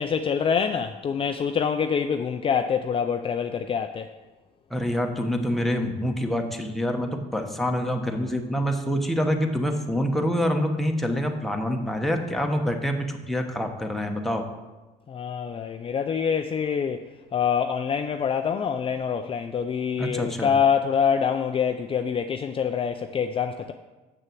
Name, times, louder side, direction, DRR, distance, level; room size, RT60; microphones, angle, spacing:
voice 1, 0.0-4.1 15.1-23.7, left 7 dB, 30° left, 0.4 m, -25 dB
voice 2, 4.7-14.4 20.0-20.5, equal, ahead, 1.1 m, -26 dB
7.0 x 6.4 x 7.7 m
cardioid pair, 110°, 17 cm